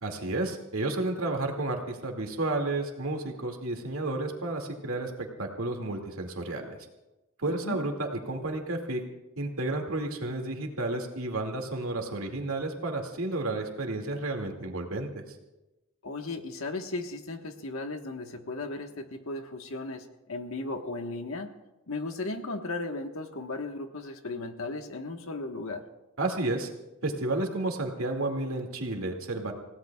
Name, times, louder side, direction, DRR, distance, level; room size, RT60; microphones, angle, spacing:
voice 1, 0.0-6.8 7.4-9.0 9.4-15.1 26.2-26.7 27.0-29.5, right 2 dB, 80° right, 2 dB, 2.3 m, -31 dB
voice 2, 7.5-7.8 16.0-21.5 21.9-25.8, left 2 dB, 75° left, 5 dB, 1.4 m, -36 dB
29.5 x 17.0 x 2.4 m, 1.0 s
head